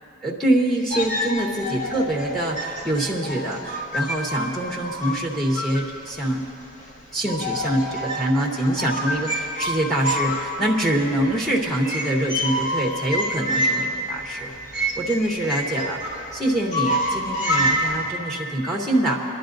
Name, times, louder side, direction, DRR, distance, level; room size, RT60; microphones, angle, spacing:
voice 1, 0.2-6.4 7.1-19.2, right 1 dB, ahead, -2 dB, 0.8 m, -25 dB
sound 1, 0.9-6.4 6.8-6.9 7.2-18.1, equal, 40° left, 0.9 m, -28 dB
29.0 x 11.0 x 2.6 m, 2.9 s
head